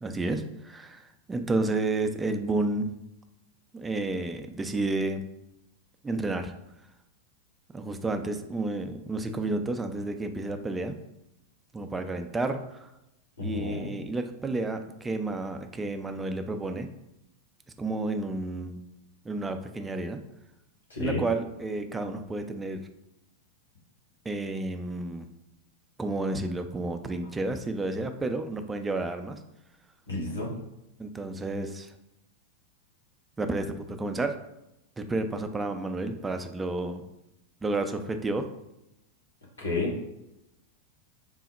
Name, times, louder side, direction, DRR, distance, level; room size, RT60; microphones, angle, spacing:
voice 1, 0.0-2.9 3.7-5.2 6.0-6.5 7.7-11.0 11.7-12.9 13.4-16.9 17.8-18.8 19.2-20.2 21.0-22.8 24.3-25.3 26.0-29.4 31.0-31.9 33.4-34.3 35.0-37.0 37.6-38.5, right 2 dB, 15° right, 7 dB, 0.3 m, -31 dB
voice 2, 13.4-13.9 20.9-21.2 30.1-30.5 39.6-39.9, left 3 dB, 70° left, -3 dB, 1.2 m, -30 dB
3.8 x 2.0 x 4.2 m, 0.88 s
figure-of-eight pair, 90°, 0 cm